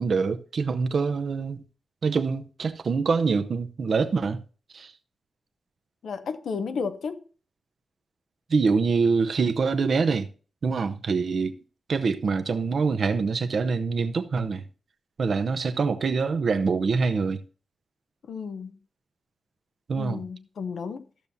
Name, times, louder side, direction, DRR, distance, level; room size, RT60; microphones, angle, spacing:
voice 1, 0.0-1.6 2.0-4.4 4.7-4.9 8.5-10.3 10.6-11.5 11.9-14.6 15.2-17.4 19.9-20.2, right 4 dB, 50° right, 0.6 m, -25 dB
voice 2, 6.0-7.2 18.3-18.8 20.0-21.0, left 5 dB, 75° left, 0.7 m, -33 dB
13.5 x 7.0 x 2.7 m
wide cardioid pair, 155°, 0 cm